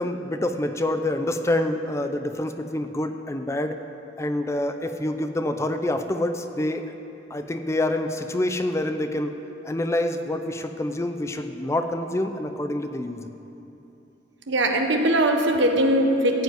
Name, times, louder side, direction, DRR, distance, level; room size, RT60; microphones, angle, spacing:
voice 1, 0.0-3.8 4.2-6.9 7.3-13.3, left 1 dB, 15° left, 7 dB, 0.5 m, -27 dB
voice 2, 14.5-16.4, right 1 dB, 80° right, 3 dB, 1.2 m, -21 dB
15.0 x 5.2 x 9.2 m, 3.0 s
head